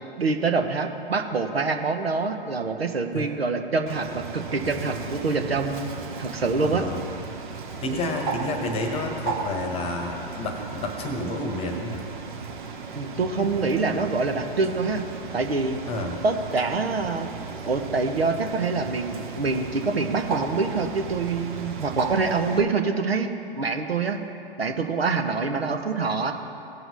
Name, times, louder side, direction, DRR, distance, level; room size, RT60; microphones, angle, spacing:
voice 1, 0.2-5.9 6.2-6.9 12.9-15.0 15.3-15.8 16.2-17.3 17.6-26.3, right 4 dB, 80° right, 5 dB, 1.1 m, -25 dB
Bird, 3.9-22.6, right 4 dB, 55° right, 1.3 m, -35 dB
voice 2, 6.6-7.0 7.8-12.0 15.9-16.2, left 2 dB, 20° left, 3 dB, 1.2 m, -30 dB
17.5 x 6.0 x 4.1 m, 2.7 s
figure-of-eight pair, 115°, 30 cm